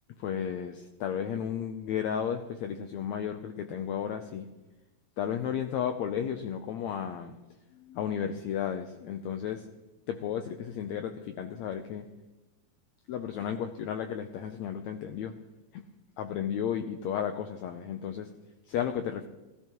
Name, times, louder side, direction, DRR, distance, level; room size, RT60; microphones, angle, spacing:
voice 1, 0.2-4.5 5.2-7.4 7.7-9.7 10.1-12.1 13.1-15.3 15.7-15.8 16.2-18.3 18.7-19.3, left 8 dB, 85° left, 7 dB, 1.6 m, -33 dB
18.0 x 13.5 x 3.0 m, 1.1 s
omnidirectional pair, 4.0 m